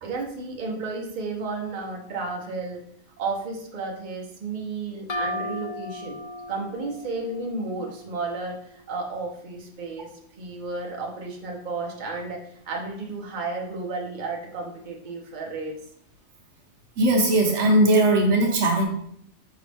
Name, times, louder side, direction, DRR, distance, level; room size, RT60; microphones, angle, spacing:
voice 1, 0.0-2.8 3.2-6.2 6.5-10.1 10.4-12.4 12.7-15.7, right 3 dB, 45° right, -1 dB, 0.9 m, -32 dB
sound 1, 5.1-8.6, left 1 dB, 45° left, 0.4 m, -35 dB
voice 2, 17.0-18.9, right 1 dB, 75° right, 1 dB, 1.1 m, -19 dB
5.0 x 3.0 x 3.4 m, 0.68 s
omnidirectional pair, 1.2 m